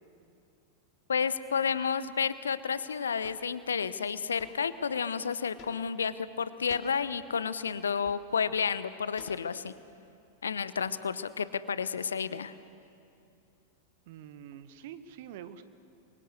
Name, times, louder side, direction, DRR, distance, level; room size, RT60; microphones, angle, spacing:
voice 1, 1.1-9.7 10.4-12.5, left 6 dB, 70° left, 15 dB, 0.9 m, -31 dB
sound 1, 3.2-3.5 4.4-4.7 5.6-6.1 6.7-7.0 7.8-8.4 9.2-9.8, left 8 dB, 40° left, 2.7 m, -52 dB
voice 2, 14.1-15.6, right 9 dB, 50° right, 11 dB, 1.2 m, -46 dB
28.0 x 23.5 x 8.3 m, 2.5 s
figure-of-eight pair, 90°, 0 cm